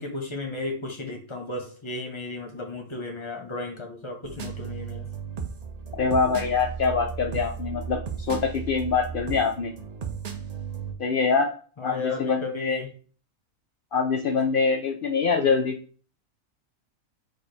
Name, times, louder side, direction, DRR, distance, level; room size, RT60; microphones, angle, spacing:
voice 1, 0.0-5.1 11.8-12.9, left 3 dB, 25° left, 2 dB, 0.7 m, -34 dB
sound 1, 4.2-10.9, right 6 dB, 55° right, 0.4 m, -35 dB
voice 2, 5.9-9.7 11.0-11.5 11.8-12.8 13.9-15.8, left 5 dB, 80° left, 3 dB, 0.4 m, -24 dB
4.8 x 2.4 x 4.3 m, 0.41 s
omnidirectional pair, 1.4 m